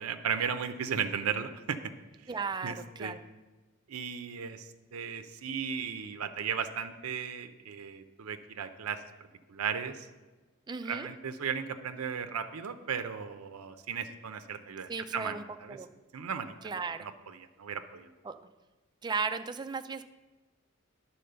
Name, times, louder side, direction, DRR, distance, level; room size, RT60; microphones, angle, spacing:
voice 1, 0.0-1.8 2.3-2.4 2.6-3.1 3.9-4.7 4.9-9.0 9.5-10.0 10.9-15.8 16.1-16.5 17.0-17.1 17.6-18.1, right 7 dB, 80° right, 9 dB, 0.5 m, -35 dB
voice 2, 2.3-3.2 10.7-11.1 14.9-15.9 16.6-17.1 18.2-18.4 19.0-20.0, right 5 dB, 20° right, 9 dB, 0.3 m, -36 dB
10.0 x 4.2 x 6.7 m, 1.2 s
head